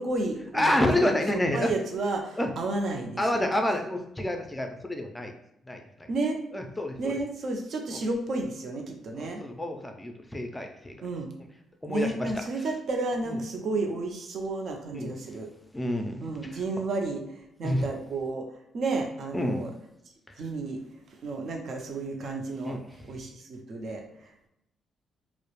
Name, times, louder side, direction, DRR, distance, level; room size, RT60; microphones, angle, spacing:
voice 1, 0.0-3.4 6.1-6.4 7.0-9.4 11.0-11.3 11.9-15.5 16.2-18.5 18.7-19.7 20.4-20.8 21.2-22.8 23.1-24.5, right 2 dB, 60° right, 2 dB, 0.5 m, -32 dB
voice 2, 0.5-1.7 2.4-2.5 3.2-5.3 5.7-6.1 6.5-7.1 7.9-8.0 9.1-11.0 11.8-12.3 13.3-13.4 14.9-15.2 15.7-16.6 17.6-17.9 19.3-19.7 22.6-22.8, left 1 dB, 10° left, 4 dB, 0.4 m, -28 dB
2.3 x 2.0 x 3.0 m, 0.80 s
cardioid pair, 85°, 0 cm